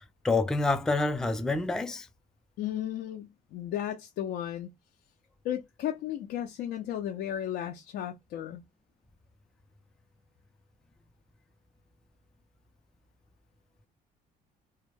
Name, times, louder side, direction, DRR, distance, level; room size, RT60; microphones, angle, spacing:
voice 1, 0.0-2.1, left 3 dB, 5° left, 0.3 m, -28 dB
voice 2, 2.6-4.7 5.4-8.6, left 11 dB, 70° left, 0.4 m, -34 dB
2.2 x 2.0 x 3.1 m
cardioid pair, 110°, 17 cm